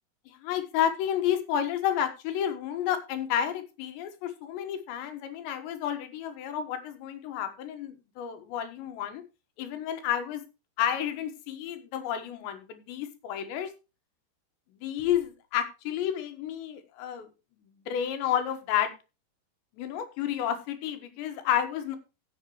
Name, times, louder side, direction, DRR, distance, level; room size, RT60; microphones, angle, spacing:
voice 1, 0.3-9.2 9.6-10.5 10.8-13.7 14.8-17.3 17.9-18.9 19.8-22.0, left 10 dB, 85° left, 8 dB, 3.6 m, -31 dB
15.5 x 7.4 x 3.1 m, 0.29 s
omnidirectional pair, 5.0 m